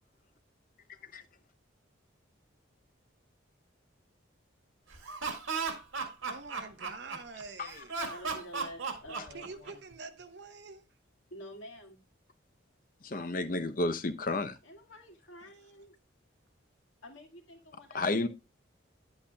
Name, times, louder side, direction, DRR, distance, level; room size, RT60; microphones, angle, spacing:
Laughter, 4.9-7.4 7.9-9.9, right 5 dB, 90° right, 1.9 m, -35 dB
voice 1, 6.3-7.9 9.3-10.8, right 4 dB, 55° right, 1.0 m, -46 dB
voice 2, 8.1-9.8 11.3-12.0 14.6-15.9 17.0-18.3, equal, 80° left, 1.9 m, -49 dB
voice 3, 13.0-14.6 17.9-18.3, left 2 dB, 45° left, 0.7 m, -31 dB
9.9 x 8.6 x 2.3 m
head